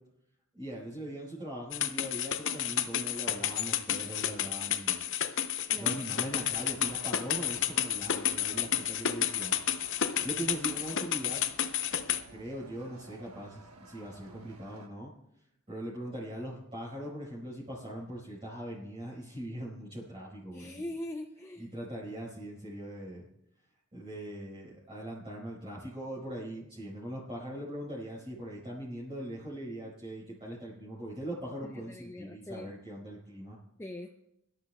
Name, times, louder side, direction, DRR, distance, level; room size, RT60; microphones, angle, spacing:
voice 1, 0.5-5.0 5.7-11.4 12.3-15.1 15.7-20.7 21.6-23.3 23.9-33.6, right 1 dB, 30° right, -7 dB, 5.0 m, -41 dB
sound 1, 1.7-12.2, left 10 dB, 60° left, 0.7 m, -31 dB
sound 2, 6.3-14.9, right 2 dB, 85° right, 1.3 m, -54 dB
voice 2, 20.5-21.7 31.6-32.7 33.8-34.1, left 1 dB, 10° left, 4 dB, 0.5 m, -41 dB
23.5 x 12.5 x 2.3 m, 0.80 s
head